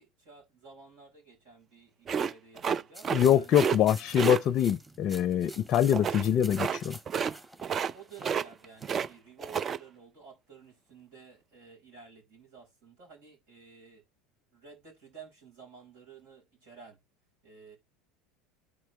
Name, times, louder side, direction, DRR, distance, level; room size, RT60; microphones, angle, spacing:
voice 1, 0.0-3.7 7.6-14.0 14.5-17.0 17.4-17.8, right 5 dB, 70° right, 4.8 m, -52 dB
sound 1, 2.1-3.3 3.5-3.8 4.2-4.4 5.9-6.3 6.6-6.8 7.1-7.4 7.6-9.1 9.4-9.8, right 7 dB, 35° right, 0.4 m, -30 dB
sound 2, 2.9-9.1, right 1 dB, 10° right, 1.7 m, -48 dB
voice 2, 3.1-7.0, left 10 dB, 50° left, 0.5 m, -24 dB
11.0 x 4.5 x 3.2 m
hypercardioid pair, 80°, 0 cm